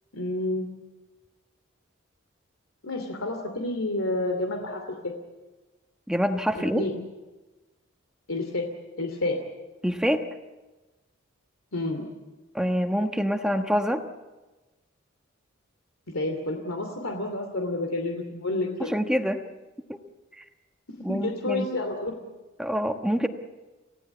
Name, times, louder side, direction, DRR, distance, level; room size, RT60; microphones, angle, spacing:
voice 1, 0.1-0.7 2.8-5.1 6.5-7.0 8.3-8.7 9.0-9.4 11.7-12.1 16.1-18.9 21.1-22.2, left 2 dB, 80° left, 4 dB, 2.8 m, -29 dB
voice 2, 6.1-6.9 9.8-10.3 12.5-14.0 18.8-19.5 19.9-20.0 20.4-20.5 21.0-21.7 22.6-23.3, equal, 5° right, 6 dB, 1.2 m, -26 dB
29.0 x 16.5 x 8.3 m, 1.2 s
head